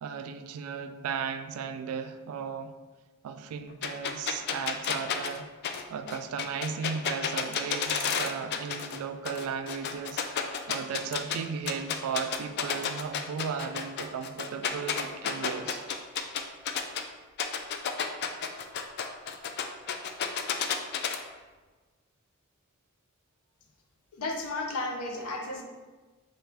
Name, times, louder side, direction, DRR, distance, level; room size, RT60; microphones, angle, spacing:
voice 1, 0.0-2.8 3.2-5.5 5.9-10.2 10.7-15.8, right 6 dB, 80° right, 9 dB, 0.3 m, -35 dB
sound 1, 3.8-9.0 9.2-11.4 11.7-17.0 17.4-21.2, left 7 dB, 50° left, 0.3 m, -31 dB
voice 2, 24.1-25.6, left 2 dB, 90° left, 2 dB, 0.6 m, -33 dB
4.3 x 2.4 x 3.4 m, 1.3 s
head